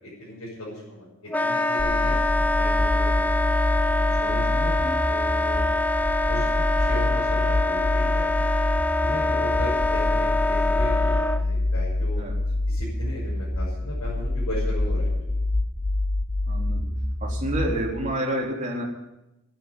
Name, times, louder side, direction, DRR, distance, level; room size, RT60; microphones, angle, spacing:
voice 1, 0.0-3.5 4.0-5.6 6.3-6.5 6.7-8.4 9.0-12.2 12.7-15.4, left 1 dB, 80° left, -8 dB, 6.3 m, -37 dB
Wind instrument woodwind instrument, 1.3-11.4, left 2 dB, 5° left, 0.5 m, -25 dB
sound 1, 1.8-17.8, left 2 dB, 45° left, 2.9 m, -26 dB
voice 2, 16.5-16.9 17.2-18.8, right 1 dB, 35° right, -2 dB, 3.4 m, -28 dB
12.0 x 9.7 x 9.1 m, 0.92 s
head